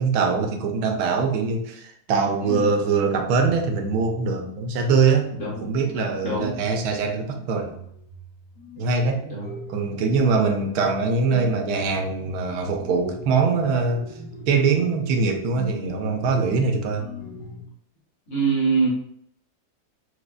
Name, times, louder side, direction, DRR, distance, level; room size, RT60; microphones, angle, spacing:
voice 1, 0.0-7.8 8.8-9.2 9.7-14.1 14.5-17.1, right 4 dB, 75° right, 4 dB, 1.1 m, -23 dB
sound 1, 3.4-17.6, left 1 dB, 35° left, 0.7 m, -39 dB
voice 2, 5.3-5.6 6.2-6.5 9.2-9.5 18.3-18.9, right 4 dB, 55° left, -6 dB, 1.2 m, -24 dB
4.8 x 2.1 x 2.3 m, 0.69 s
omnidirectional pair, 1.6 m